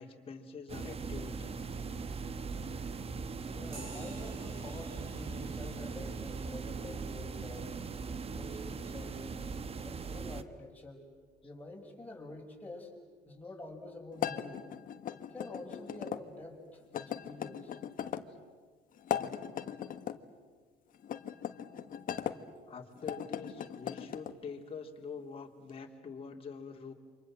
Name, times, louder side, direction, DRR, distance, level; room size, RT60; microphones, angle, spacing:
voice 1, 0.0-1.7 22.7-26.9, left 5 dB, 35° left, 1 dB, 3.2 m, -45 dB
sound 1, 0.7-10.4, right 4 dB, 35° right, 1.2 m, -40 dB
voice 2, 3.5-7.8 8.3-9.3 9.8-11.1 11.4-12.9 13.2-14.7 15.3-17.7, left 2 dB, 10° left, -1 dB, 6.5 m, -47 dB
sound 2, 3.7-11.6, right 1 dB, 60° right, 7.6 m, -56 dB
sound 3, 14.2-16.2 16.9-18.3 19.0-20.2 21.0-22.4 23.0-24.3, left 9 dB, 55° left, 1.4 m, -38 dB
29.0 x 26.0 x 7.6 m, 1.5 s
cardioid pair, 110°, 17 cm